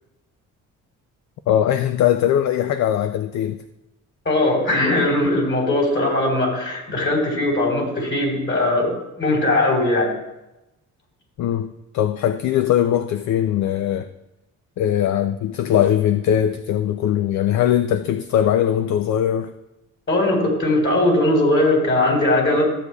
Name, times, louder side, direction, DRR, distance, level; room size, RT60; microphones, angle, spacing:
voice 1, 1.5-3.6 11.4-14.1 14.8-19.5, left 10 dB, 70° left, 10 dB, 0.5 m, -20 dB
voice 2, 4.3-10.1 20.1-22.6, left 1 dB, 40° left, -1 dB, 3.7 m, -19 dB
14.5 x 8.2 x 2.3 m, 0.93 s
cardioid pair, 90°, 30 cm